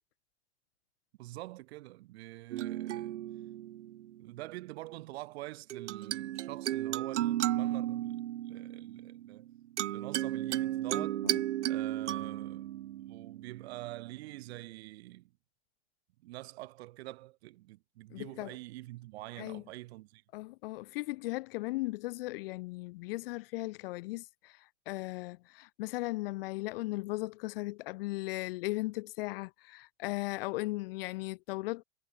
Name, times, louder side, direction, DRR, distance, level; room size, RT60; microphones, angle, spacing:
voice 1, 1.2-3.2 4.2-9.5 9.9-11.2 11.6-12.7 13.1-15.3 16.2-20.2, right 18 dB, 60° right, 3.6 m, -46 dB
sound 1, 2.5-4.3 5.7-14.2, right 13 dB, 80° right, 0.7 m, -34 dB
voice 2, 10.9-11.4 18.1-18.6 19.4-19.6 20.3-24.6 24.9-31.8, left 21 dB, 55° left, 0.5 m, -37 dB
hypercardioid pair, 100°, 35 cm